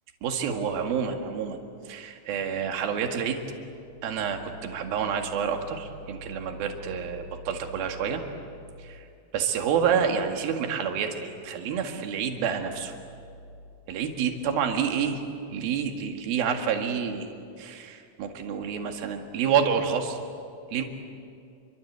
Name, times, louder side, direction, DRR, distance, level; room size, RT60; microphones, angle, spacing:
voice 1, 0.2-1.6 1.9-3.4 4.0-8.2 8.8-9.0 9.3-12.9 13.9-15.2 15.5-17.3 17.6-20.2 20.7-20.8, right 7 dB, 60° right, 4 dB, 3.3 m, -28 dB
29.0 x 24.0 x 8.1 m, 2.5 s
omnidirectional pair, 5.5 m